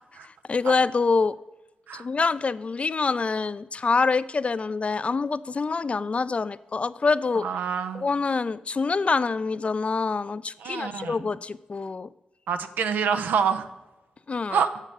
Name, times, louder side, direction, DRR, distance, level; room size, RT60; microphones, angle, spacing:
voice 1, 0.2-1.4 1.9-7.5 7.9-12.1 14.3-14.6, left 4 dB, 45° left, 16 dB, 0.4 m, -26 dB
voice 2, 7.4-8.0 10.6-11.3 12.5-13.7 14.5-14.7, right 6 dB, 85° right, 9 dB, 0.6 m, -26 dB
7.5 x 6.5 x 5.0 m, 0.98 s
cardioid pair, 50°, 3 cm